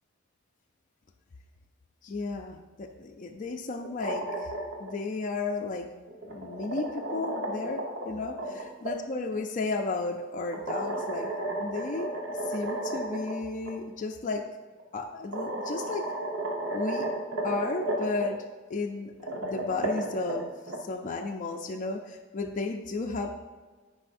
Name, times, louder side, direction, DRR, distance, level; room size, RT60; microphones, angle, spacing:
voice 1, 2.0-4.5 4.8-5.9 6.2-8.4 8.8-11.3 11.6-12.1 12.4-14.5 14.9-16.1 16.7-17.1 17.4-19.1 19.4-20.5 20.8-23.3, left 3 dB, 40° left, 2 dB, 0.4 m, -33 dB
sound 1, 3.8-4.9 6.1-8.9 10.5-13.3 13.6-13.7 14.8-14.9 15.3-18.2 19.1-20.8, right 1 dB, 60° right, 1.1 m, -33 dB
9.8 x 4.8 x 2.6 m, 1.4 s
head